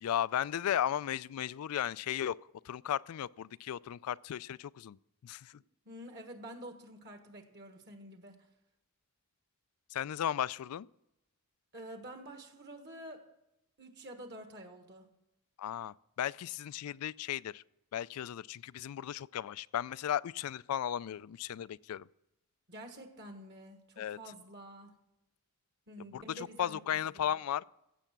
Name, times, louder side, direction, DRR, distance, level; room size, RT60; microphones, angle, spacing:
voice 1, 0.0-2.4 2.6-5.0 5.2-5.5 9.9-10.9 15.6-17.6 17.9-22.0 24.0-24.2 26.1-27.6, left 10 dB, 85° left, 0.3 m, -35 dB
voice 2, 5.8-8.4 11.7-13.2 13.8-15.1 22.7-24.9 25.9-26.8 27.1-27.4, right 1 dB, 50° right, 1.5 m, -48 dB
16.0 x 7.3 x 5.9 m
head